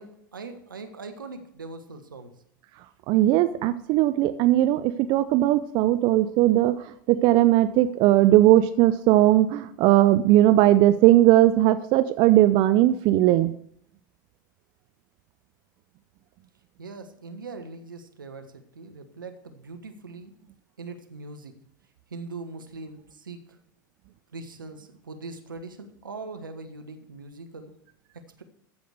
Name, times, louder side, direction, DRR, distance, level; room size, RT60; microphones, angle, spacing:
voice 1, 0.0-2.4 16.8-20.3 20.8-21.6 22.1-23.6 24.3-27.7 28.4-28.5, right 3 dB, 85° right, 6 dB, 1.3 m, -41 dB
voice 2, 3.1-13.5, right 14 dB, 45° right, 12 dB, 0.6 m, -19 dB
14.0 x 5.1 x 6.5 m, 0.69 s
figure-of-eight pair, 85°, 11 cm